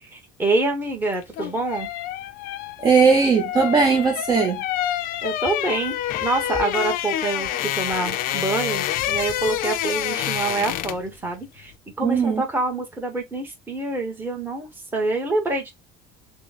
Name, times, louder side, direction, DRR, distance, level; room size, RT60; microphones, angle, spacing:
voice 1, 0.0-1.9 5.2-11.7 12.0-15.7, right 2 dB, 10° right, 1.2 m, -26 dB
sound 1, 1.1-11.1 11.4-11.6, left 12 dB, 65° left, 0.5 m, -27 dB
voice 2, 2.8-4.6 12.0-12.4, right 5 dB, 30° right, 0.8 m, -18 dB
6.0 x 2.1 x 2.4 m
cardioid pair, 145°, 16 cm